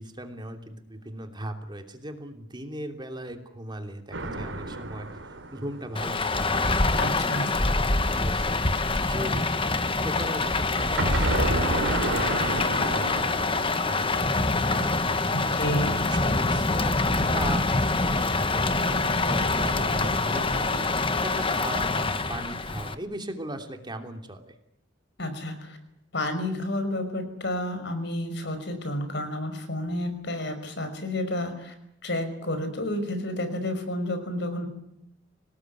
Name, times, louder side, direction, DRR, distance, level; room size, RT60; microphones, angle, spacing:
voice 1, 0.0-9.5 10.0-13.5 13.8-15.5 16.1-24.5, right 1 dB, 25° right, 5 dB, 3.0 m, -38 dB
sound 1, 4.1-6.9 11.0-17.2 18.5-20.9, right 2 dB, 85° right, 3.2 m, -32 dB
Rain, 6.0-23.0, left 3 dB, 30° left, 1.4 m, -25 dB
voice 2, 7.0-7.5 15.3-15.9 25.2-25.8 26.1-31.7 32.0-34.7, left 1 dB, 65° left, 8 dB, 5.6 m, -30 dB
25.5 x 19.0 x 9.7 m, 0.76 s
head